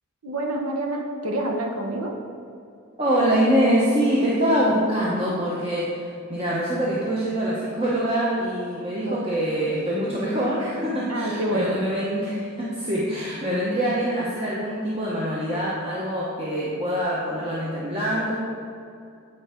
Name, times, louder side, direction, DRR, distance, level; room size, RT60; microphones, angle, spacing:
voice 1, 0.2-2.1 9.0-9.2 11.1-11.8, right 1 dB, 80° right, 1 dB, 1.0 m, -27 dB
voice 2, 3.0-18.3, equal, 25° right, -7 dB, 1.0 m, -24 dB
8.9 x 4.6 x 4.4 m, 2.4 s
head